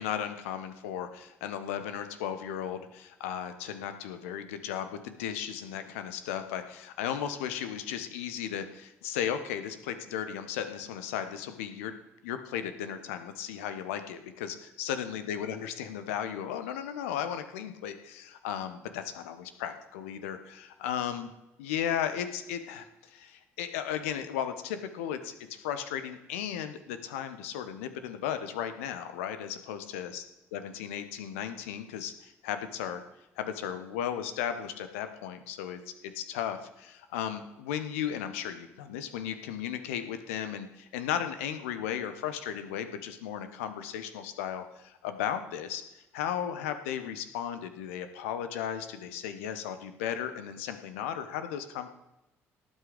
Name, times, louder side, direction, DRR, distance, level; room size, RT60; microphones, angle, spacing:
voice 1, 0.0-12.0 12.2-21.3 21.6-30.2 30.5-33.0 33.4-45.8 46.1-51.9, left 9 dB, 70° left, 9 dB, 1.2 m, -35 dB
18.0 x 8.1 x 5.2 m, 0.95 s
figure-of-eight pair, 50°, 7 cm